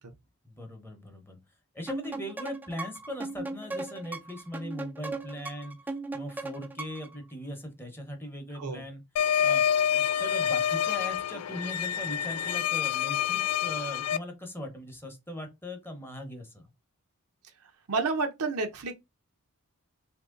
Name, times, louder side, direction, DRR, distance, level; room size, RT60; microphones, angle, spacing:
voice 1, 0.4-1.4 1.7-5.8 6.1-9.0 9.4-16.7, equal, 10° left, 0.8 m, -40 dB
sound 1, 1.9-7.2, right 3 dB, 10° right, 0.3 m, -38 dB
sound 2, 9.2-14.2, left 9 dB, 85° left, 0.3 m, -27 dB
voice 2, 17.9-19.0, right 3 dB, 85° right, 0.7 m, -29 dB
2.9 x 2.7 x 3.7 m
head